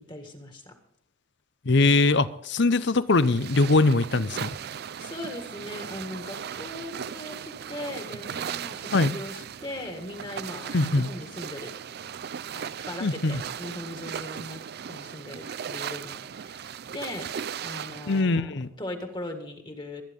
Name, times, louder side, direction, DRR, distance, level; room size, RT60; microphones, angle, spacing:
voice 1, 0.1-0.8 5.0-11.7 12.5-17.3 17.6-18.5 18.8-20.0, left 1 dB, 25° left, 5 dB, 1.8 m, -39 dB
voice 2, 1.7-4.5 8.9-9.1 10.7-11.1 13.0-13.4 18.1-18.7, left 3 dB, 55° left, 15 dB, 0.7 m, -22 dB
sound 1, 3.1-18.2, right 8 dB, 50° right, 0.4 m, -37 dB
24.0 x 9.5 x 3.7 m, 0.69 s
head